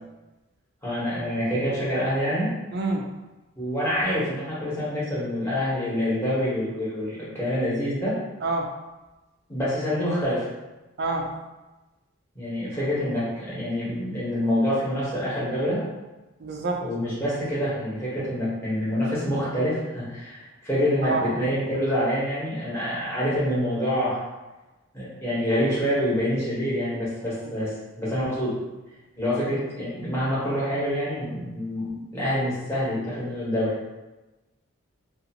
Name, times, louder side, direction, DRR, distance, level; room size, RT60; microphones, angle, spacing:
voice 1, 0.8-2.5 3.6-8.2 9.5-10.5 12.3-15.8 16.8-24.2 24.9-28.5 29.2-33.7, equal, 10° left, -10 dB, 1.1 m, -26 dB
voice 2, 2.7-3.1 8.4-8.7 11.0-11.3 16.4-16.8 21.0-21.3, right 2 dB, 50° right, 1 dB, 0.4 m, -27 dB
2.6 x 2.5 x 2.7 m, 1.1 s
head